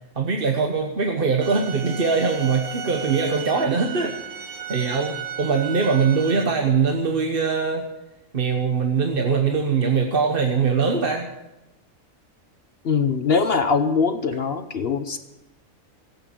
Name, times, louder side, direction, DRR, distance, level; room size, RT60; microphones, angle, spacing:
voice 1, 0.2-7.9 8.3-11.3, right 5 dB, 45° right, 3 dB, 1.2 m, -22 dB
sound 1, 1.4-6.4, right 9 dB, 65° right, 1.7 m, -35 dB
voice 2, 12.8-15.2, left 5 dB, 50° left, 9 dB, 1.0 m, -22 dB
16.0 x 8.7 x 8.8 m, 0.99 s
omnidirectional pair, 1.5 m